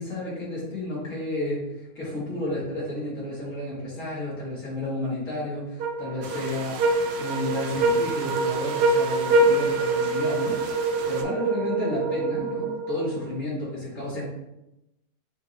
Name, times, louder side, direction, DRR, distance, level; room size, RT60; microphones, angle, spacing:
voice 1, 0.0-6.8 7.2-10.6 11.1-14.2, left 1 dB, 60° left, -7 dB, 1.8 m, -31 dB
sound 1, 5.8-13.4, right 2 dB, 85° right, 1.2 m, -25 dB
sound 2, 6.2-11.2, right 4 dB, 70° right, 0.6 m, -39 dB
6.1 x 2.7 x 2.7 m, 0.91 s
omnidirectional pair, 1.6 m